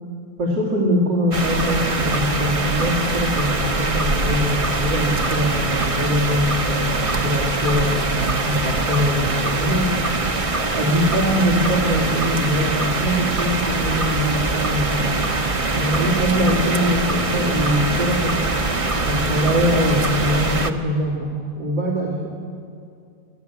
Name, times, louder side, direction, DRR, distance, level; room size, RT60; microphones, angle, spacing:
voice 1, 0.4-9.9 10.7-15.1 15.7-18.3 19.0-21.3 21.6-22.3, equal, 65° right, -2 dB, 3.5 m, -22 dB
sound 1, 1.3-20.7, right 3 dB, 35° right, 0.6 m, -23 dB
25.5 x 14.5 x 8.3 m, 2.4 s
omnidirectional pair, 2.1 m